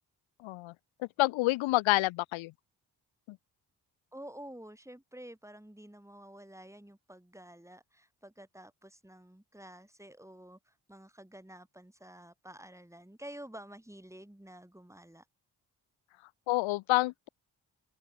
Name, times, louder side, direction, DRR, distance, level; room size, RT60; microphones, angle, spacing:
voice 1, 0.4-0.7 1.2-2.5 3.3-3.4 16.5-17.3, left 19 dB, 85° left, 0.9 m, -28 dB
voice 2, 4.1-15.2, right 1 dB, 5° right, 6.6 m, -50 dB
supercardioid pair, 45°, 46 cm